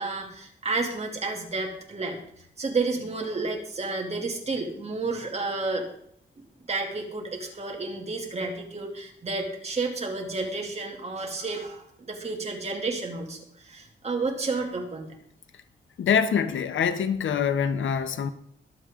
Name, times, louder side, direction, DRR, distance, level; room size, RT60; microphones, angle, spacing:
voice 1, 0.0-2.2 2.6-5.9 6.7-15.1, right 3 dB, 35° right, 2.7 m, -31 dB
voice 2, 16.0-18.3, left 7 dB, 90° left, 1.0 m, -24 dB
22.0 x 7.7 x 3.7 m
wide cardioid pair, 160°, 20 cm